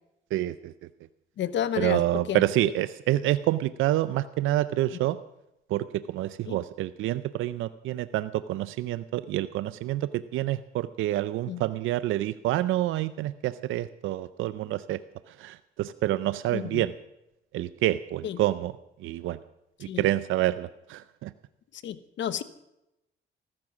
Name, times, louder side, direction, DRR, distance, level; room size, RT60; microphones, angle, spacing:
voice 1, 0.3-0.7 1.8-5.2 5.7-15.0 15.4-16.9 17.5-18.7 19.0-19.4 19.8-21.3, right 14 dB, 85° right, 14 dB, 0.5 m, -27 dB
voice 2, 1.4-2.7 6.5-6.6 11.5-11.6 16.5-16.8 18.2-18.4 19.9-20.1 21.7-22.4, left 10 dB, 70° left, 14 dB, 1.0 m, -31 dB
15.0 x 14.0 x 6.1 m, 0.88 s
cardioid pair, 90°, 20 cm